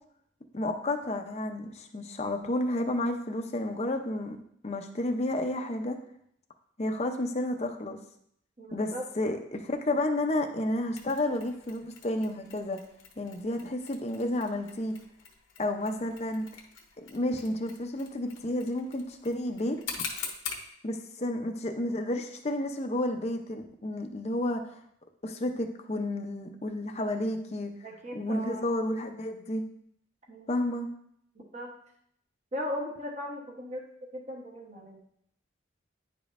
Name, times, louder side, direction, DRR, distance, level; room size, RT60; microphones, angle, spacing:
voice 1, 0.5-4.4 4.6-6.0 6.8-8.0 8.7-12.8 13.2-14.9 15.6-16.5 17.0-20.0 20.8-24.6 25.2-27.7 28.1-29.6 30.5-30.9, left 1 dB, 35° left, 5 dB, 0.5 m, -31 dB
voice 2, 8.6-9.1 21.2-21.3 27.8-28.7 30.3-30.5 31.5-31.7 32.5-33.8 34.1-35.0, equal, 35° right, -1 dB, 1.0 m, -38 dB
Mechanisms, 11.0-20.7, left 6 dB, 85° left, 1.0 m, -44 dB
9.6 x 5.2 x 2.5 m, 0.71 s
head